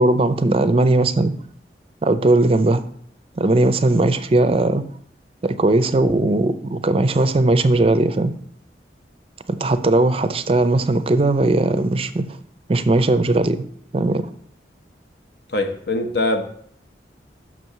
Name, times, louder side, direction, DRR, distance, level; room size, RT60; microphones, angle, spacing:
voice 1, 0.0-1.3 2.0-2.8 3.4-4.8 5.4-8.3 9.5-12.2 12.7-13.6 13.9-14.2, right 2 dB, 30° right, 11 dB, 0.4 m, -18 dB
voice 2, 15.5-16.4, left 2 dB, 70° left, 5 dB, 1.0 m, -22 dB
6.1 x 4.6 x 6.5 m, 0.64 s
head